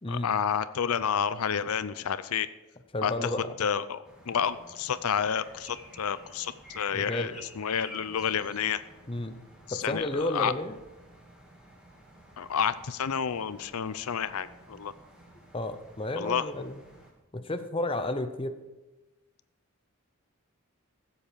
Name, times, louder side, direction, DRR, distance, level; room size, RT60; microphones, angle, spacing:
voice 1, 0.1-2.5 3.0-8.8 9.7-10.5 12.4-14.9 16.1-16.5, left 7 dB, 80° left, 14 dB, 0.5 m, -30 dB
voice 2, 2.9-3.5 6.9-7.3 9.1-9.4 9.7-10.8 15.5-16.8 17.3-18.5, left 1 dB, 25° left, 9 dB, 0.7 m, -32 dB
sound 1, 4.0-17.1, equal, 5° right, 2.3 m, -52 dB
15.5 x 7.9 x 5.1 m, 1.1 s
head